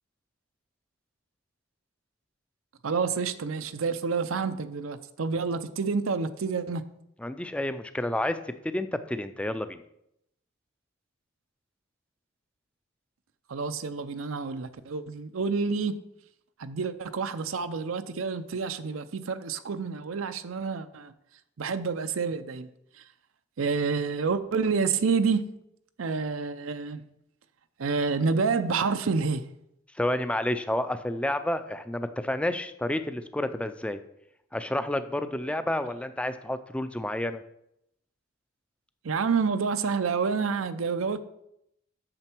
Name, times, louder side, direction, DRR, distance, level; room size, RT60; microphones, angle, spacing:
voice 1, 2.8-6.8 13.5-16.0 16.6-21.1 21.6-22.7 23.6-25.4 26.0-27.1 27.8-29.4 39.0-41.2, right 5 dB, 85° right, 0.6 m, -28 dB
voice 2, 7.2-8.4 8.6-9.8 30.0-34.0 34.5-37.4, left 1 dB, 5° left, 0.4 m, -30 dB
8.9 x 6.8 x 4.5 m
head